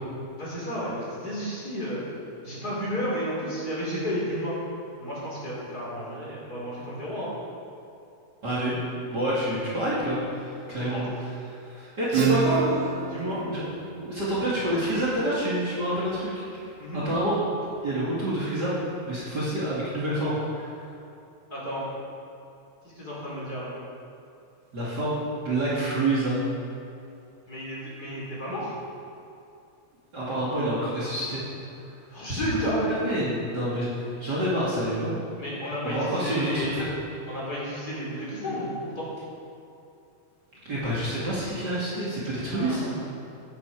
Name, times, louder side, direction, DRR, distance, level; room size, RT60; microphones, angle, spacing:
voice 1, 0.3-2.0 2.4-4.5 5.0-7.3 10.6-11.0 13.0-13.4 16.8-17.0 21.5-21.8 23.0-23.7 27.5-28.7 32.1-32.8 35.4-36.8 37.3-38.7 39.0-39.1 42.5-43.0, equal, 30° left, -7 dB, 4.1 m, -32 dB
voice 2, 8.4-8.8 9.1-11.2 11.6-12.7 13.5-13.6 14.0-16.3 16.9-17.4 17.8-18.7 19.0-20.8 24.7-26.4 30.1-31.4 32.2-35.2 35.8-36.9 40.7-42.9, right 1 dB, 35° right, -8 dB, 2.8 m, -27 dB
Acoustic guitar / Strum, 12.1-17.5, right 6 dB, 70° right, 1.8 m, -31 dB
15.5 x 9.8 x 4.8 m, 2.6 s
omnidirectional pair, 3.3 m